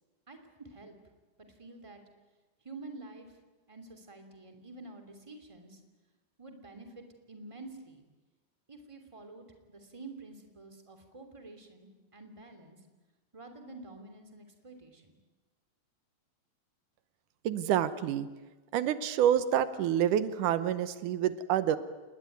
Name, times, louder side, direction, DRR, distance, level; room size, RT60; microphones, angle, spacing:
voice 1, 0.3-1.0 1.4-2.0 2.6-3.4 3.7-5.8 6.4-8.0 8.7-12.8 13.3-15.2, right 2 dB, 10° right, 5 dB, 2.7 m, -49 dB
voice 2, 17.4-18.3 18.7-21.8, right 10 dB, 85° right, 13 dB, 2.5 m, -28 dB
28.0 x 20.5 x 9.4 m, 1.2 s
omnidirectional pair, 3.5 m